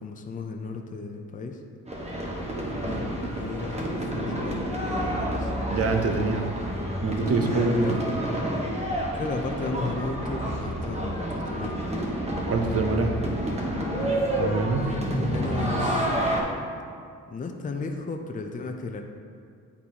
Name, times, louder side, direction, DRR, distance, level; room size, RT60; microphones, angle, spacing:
voice 1, 0.0-1.5 2.7-5.4 7.8-8.0 9.2-11.7 14.8-16.1 17.3-19.0, left 3 dB, 25° left, 4 dB, 0.5 m, -34 dB
sound 1, 1.9-16.4, equal, 20° right, 1.1 m, -29 dB
voice 2, 5.7-6.5 7.0-8.0 12.5-13.2 14.4-14.9, right 3 dB, 45° right, 4 dB, 0.7 m, -25 dB
8.2 x 4.2 x 2.8 m, 2.2 s
cardioid pair, 80°, 33 cm